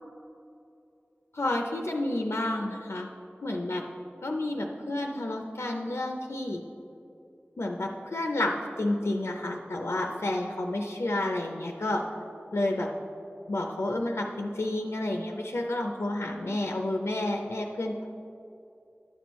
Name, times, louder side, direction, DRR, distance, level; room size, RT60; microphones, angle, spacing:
voice 1, 1.3-3.1 3.4-3.8 4.2-6.6 7.6-12.0 12.5-12.9 13.5-18.0, left 1 dB, 90° left, 2 dB, 0.5 m, -30 dB
10.5 x 6.1 x 3.0 m, 2.8 s
wide cardioid pair, 40°, 4 cm